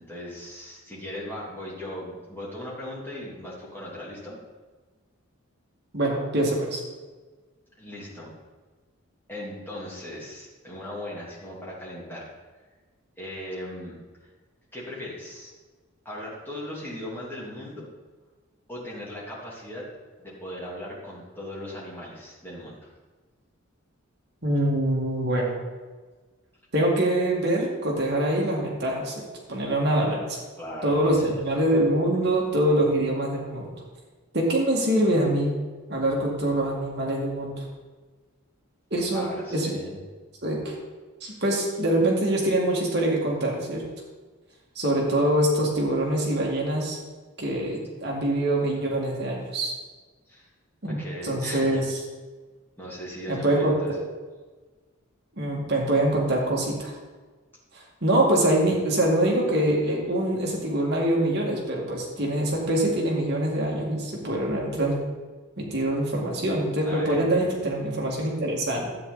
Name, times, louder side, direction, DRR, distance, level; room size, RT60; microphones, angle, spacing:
voice 1, 0.0-4.4 7.8-8.3 9.3-12.3 13.2-14.0 14.7-15.5 16.0-17.9 18.7-19.8 20.2-22.9 30.6-31.6 39.1-40.0 50.3-50.5 50.9-51.8 52.8-53.9 66.8-67.6, left 1 dB, 10° left, -6 dB, 2.8 m, -38 dB
voice 2, 5.9-6.8 24.4-25.6 26.7-29.2 29.5-30.4 30.8-33.7 34.3-35.5 35.9-37.6 38.9-39.2 39.5-39.8 40.4-40.8 41.2-43.8 44.8-47.0 47.4-49.7 50.8-52.0 53.3-53.8 55.4-56.9 57.7-65.0 65.6-68.9, right 1 dB, 50° right, -2 dB, 2.1 m, -24 dB
12.0 x 8.6 x 4.0 m, 1.3 s
head